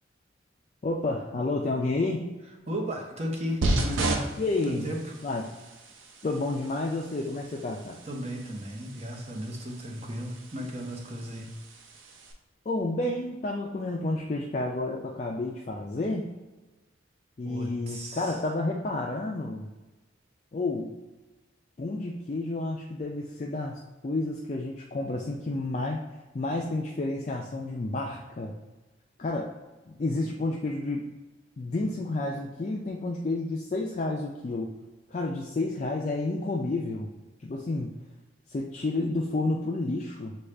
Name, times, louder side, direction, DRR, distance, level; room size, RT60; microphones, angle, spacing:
voice 1, 0.8-2.4 4.4-4.9 5.2-5.5 6.2-8.0 12.7-16.3 17.4-19.7 20.5-21.0 21.8-26.0 26.3-28.5 29.2-29.5 29.9-31.1 31.6-34.7 35.1-37.1 37.4-38.0 38.5-40.4, left 2 dB, 35° left, -1 dB, 0.3 m, -30 dB
voice 2, 2.7-4.3 4.6-5.0 8.0-11.5 17.4-18.3, equal, 35° right, 0 dB, 0.8 m, -35 dB
sound 1, 3.6-12.3, right 2 dB, 85° right, 0.6 m, -35 dB
6.4 x 2.3 x 3.3 m, 1.1 s
head